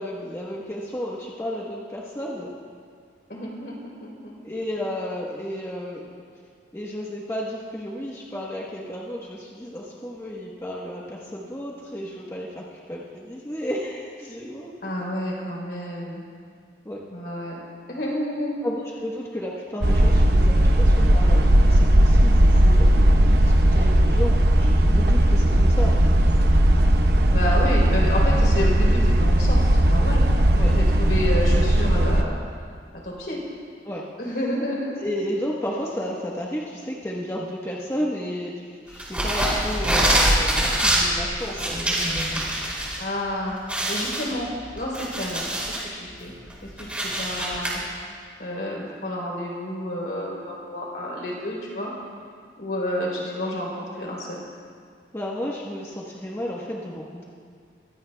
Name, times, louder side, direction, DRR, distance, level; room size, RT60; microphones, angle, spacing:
voice 1, 0.0-2.5 4.4-6.2 6.7-15.1 16.8-17.0 18.6-26.0 30.6-30.8 33.8-34.1 35.0-42.4 55.1-57.2, equal, 15° left, -4 dB, 1.2 m, -33 dB
voice 2, 3.3-4.3 14.8-16.2 17.1-17.6 17.9-18.6 27.3-30.2 30.7-32.4 33.0-33.4 34.2-34.9 43.0-46.3 46.8-47.8 48.4-51.9 52.6-54.4, left 1 dB, 65° left, -3 dB, 3.5 m, -30 dB
sound 1, 19.8-32.2, right 1 dB, 65° right, 0.9 m, -17 dB
sound 2, 39.0-43.0 43.3-43.4 43.7-45.9 46.3-47.7, right 1 dB, 5° right, 2.9 m, -24 dB
23.0 x 16.0 x 2.3 m, 2.1 s
head